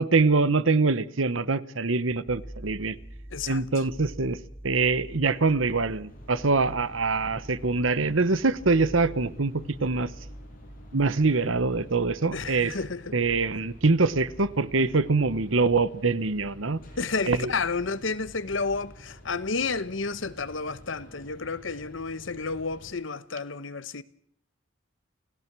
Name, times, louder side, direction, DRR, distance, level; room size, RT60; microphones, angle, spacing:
voice 1, 0.0-3.0 3.5-4.4 4.6-10.1 10.9-12.7 13.1-16.8 17.3-17.5, right 3 dB, 85° right, 1.1 m, -24 dB
sound 1, 2.3-19.0, equal, 10° right, 3.5 m, -47 dB
voice 2, 3.3-3.6 12.3-13.2 17.0-24.0, left 4 dB, 75° left, 1.2 m, -31 dB
sound 2, 6.1-22.9, equal, 45° left, 7.7 m, -50 dB
29.0 x 17.0 x 6.2 m
head